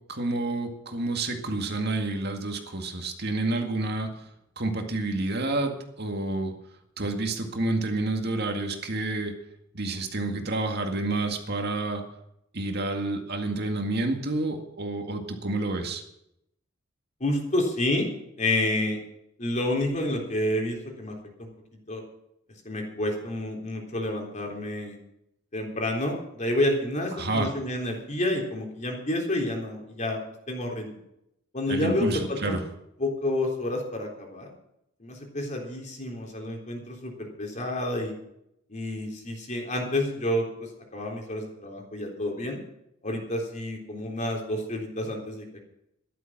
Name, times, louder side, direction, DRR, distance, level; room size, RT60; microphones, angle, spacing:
voice 1, 0.1-4.3 4.6-6.5 7.0-9.3 9.7-12.0 12.5-16.0 27.1-27.5 31.7-32.6, right 2 dB, 55° right, 4 dB, 2.0 m, -29 dB
voice 2, 17.2-18.1 18.4-19.0 19.4-21.5 21.9-22.0 22.7-25.0 25.5-30.2 30.5-31.0 31.5-32.6 33.0-34.5 35.0-38.1 38.7-42.6 43.0-45.6, left 1 dB, 40° left, 1 dB, 3.6 m, -29 dB
13.5 x 11.5 x 6.0 m, 0.79 s
head